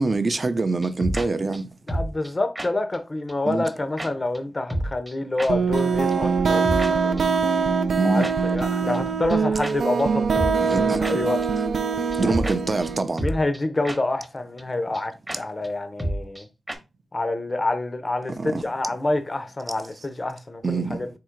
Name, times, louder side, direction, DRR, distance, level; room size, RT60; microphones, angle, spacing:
voice 1, 0.0-1.7 3.5-3.6 8.0-8.3 10.6-11.2 12.2-13.3 18.4-18.6 20.6-21.1, right 3 dB, 35° right, 0.5 m, -25 dB
sound 1, 0.8-1.3 1.5-1.6 1.9-2.3 2.6-2.7 2.9-3.0 3.3-3.4 3.6-3.7 4.0-4.1 4.3-4.4 4.7-5.1 5.4-5.5 5.8-5.9 6.1-6.2 6.5-6.9 7.2-7.3 8.2-8.3 8.6-8.7 8.9-9.0 9.3-9.4 9.6-9.7 10.0-10.1 10.3-10.8 11.0-11.1 11.4-11.5 11.8-11.9 12.1-12.6 12.8-12.9 13.2-13.6 13.8-14.0 14.2-14.3 14.6-14.7 14.9-15.0 15.3-15.4 15.6-15.7 16.0-16.4 16.7-16.8, right 1 dB, 15° right, 0.8 m, -29 dB
voice 2, 1.9-7.3 8.0-11.4 12.3-12.5 13.2-16.5 17.1-21.1, left 2 dB, 25° left, 0.5 m, -27 dB
sound 2, 5.5-13.0, right 5 dB, 85° right, 0.4 m, -23 dB
3.7 x 2.8 x 4.4 m
wide cardioid pair, 140°, 0 cm